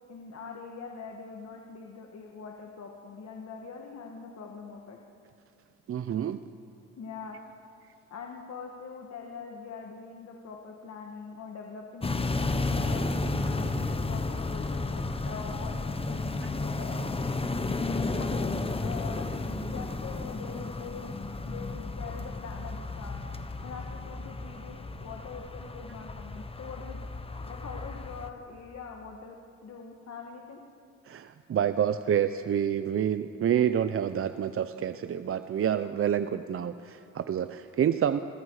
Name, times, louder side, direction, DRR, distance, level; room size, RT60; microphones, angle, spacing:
voice 1, 0.1-5.0 7.0-7.4 8.1-13.1 13.3-17.3 18.2-21.1 21.4-23.2 23.6-27.0 27.4-29.4 29.6-30.6, left 5 dB, 55° left, 1 dB, 2.0 m, -43 dB
voice 2, 5.9-6.4 31.1-38.2, right 9 dB, 45° right, 11 dB, 0.7 m, -28 dB
sound 1, 12.0-28.3, left 3 dB, 20° left, 1.2 m, -32 dB
25.5 x 23.0 x 4.9 m, 2.6 s
cardioid pair, 90°, 30 cm